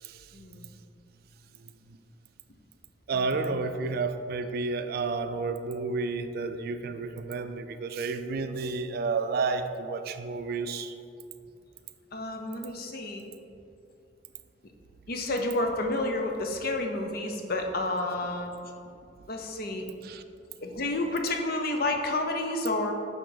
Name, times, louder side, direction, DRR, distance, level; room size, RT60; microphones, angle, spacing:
voice 1, 0.3-0.7 2.5-2.6 3.1-3.7 12.1-13.2 15.1-18.5 19.3-19.8 20.6-22.9, left 2 dB, 55° left, 4 dB, 0.6 m, -30 dB
voice 2, 3.1-10.9 20.0-20.2, right 4 dB, 55° right, 9 dB, 0.3 m, -31 dB
7.6 x 3.8 x 3.9 m, 2.5 s
head